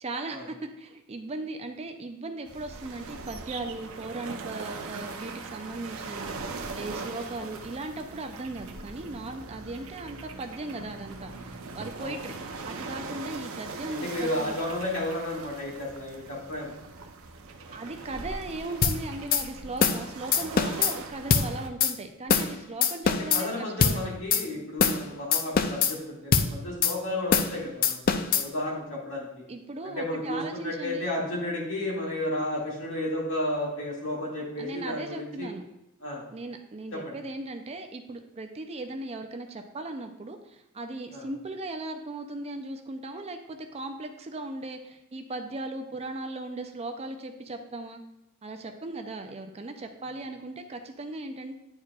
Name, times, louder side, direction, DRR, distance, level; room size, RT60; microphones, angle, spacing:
voice 1, 0.0-12.4 12.6-14.6 17.7-24.1 29.5-31.1 34.6-35.6 36.3-48.0 48.4-51.6, right 2 dB, 30° right, 6 dB, 0.5 m, -38 dB
sound 1, 2.5-21.7, right 3 dB, 75° right, 0.6 m, -40 dB
voice 2, 13.9-16.8 23.3-29.4 29.8-35.5 36.0-36.2 36.9-37.1 41.1-41.3, left 1 dB, 65° left, -4 dB, 2.1 m, -32 dB
sound 2, 18.8-19.0 19.3-19.4 19.8-20.0 20.3-20.9 21.3-21.5 21.8-21.9 22.3-22.5 22.8-23.4 23.8-24.0 24.3-24.4 24.8-25.0 25.3-25.9 26.3-26.5 26.8-26.9 27.3-27.5 27.8-28.4, left 6 dB, 45° left, 0.4 m, -23 dB
9.7 x 4.6 x 2.3 m, 0.89 s
head